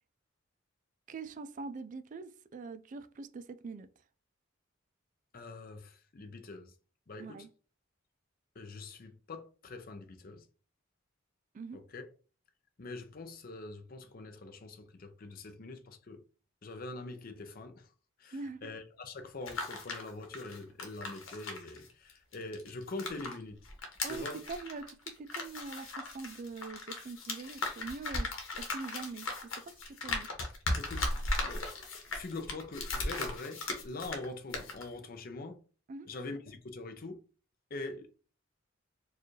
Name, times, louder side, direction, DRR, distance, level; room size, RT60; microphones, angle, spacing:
voice 1, 1.1-3.9 7.2-7.5 11.5-11.8 18.3-18.7 24.0-28.3 28.6-29.3 29.6-30.3 35.9-36.1, right 4 dB, 40° right, 0.3 m, -43 dB
voice 2, 5.3-6.7 7.1-7.5 8.5-10.5 11.7-12.0 12.8-16.2 16.6-17.9 18.2-23.6 24.1-24.4 30.8-31.1 31.5-35.6 36.0-37.2 37.7-38.1, left 2 dB, 45° left, 0.6 m, -44 dB
GE microcassette dictaphone handling sounds, 19.3-23.3 23.6-34.3 34.5-34.8, left 2 dB, 90° left, 1.0 m, -37 dB
4.5 x 2.4 x 3.1 m
head